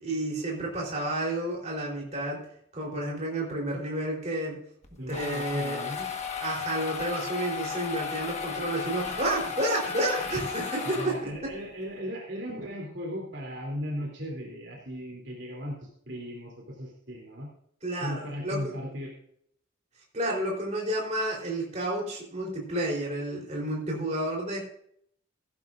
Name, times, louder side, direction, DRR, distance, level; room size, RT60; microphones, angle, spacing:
voice 1, 0.0-2.4 2.7-4.6 5.1-5.8 6.4-11.5 17.8-18.8 20.1-24.6, right 1 dB, 35° right, -2 dB, 3.8 m, -31 dB
sound 1, 4.8-11.5, left 6 dB, 35° left, 1.4 m, -35 dB
voice 2, 5.0-6.1 10.8-17.5 18.0-19.1, equal, 60° right, -1 dB, 3.1 m, -37 dB
16.0 x 12.0 x 2.6 m, 0.66 s
head